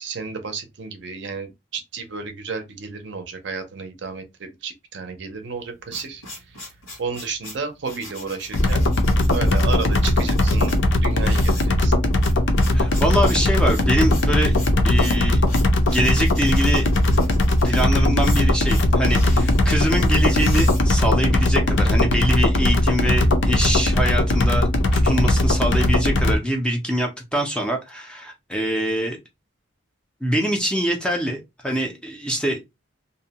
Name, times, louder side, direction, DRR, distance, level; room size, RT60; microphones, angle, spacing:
voice 1, 0.0-6.2 6.6-6.7 7.0-8.9 9.3-11.9, right 4 dB, 55° right, 0.5 m, -32 dB
sound 1, 5.5-21.5, left 2 dB, 90° left, 1.4 m, -40 dB
sound 2, 8.5-26.4, left 1 dB, 60° left, 0.5 m, -19 dB
voice 2, 12.7-14.5 14.8-15.4 15.8-16.9 17.6-29.2 30.2-32.6, equal, 5° left, 0.4 m, -24 dB
2.6 x 2.1 x 2.8 m
head